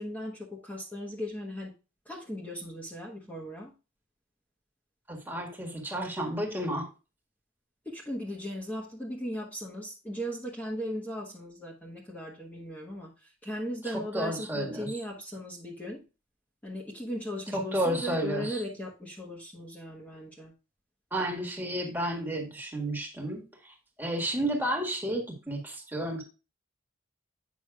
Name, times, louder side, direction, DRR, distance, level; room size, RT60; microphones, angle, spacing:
voice 1, 0.0-1.7 2.0-3.7 7.8-16.0 16.6-20.5, equal, 10° left, -4 dB, 1.2 m, -37 dB
voice 2, 5.1-6.9 14.1-14.9 17.5-18.6 21.1-26.2, right 1 dB, 10° right, 1 dB, 1.7 m, -32 dB
8.4 x 6.0 x 2.3 m, 0.30 s
head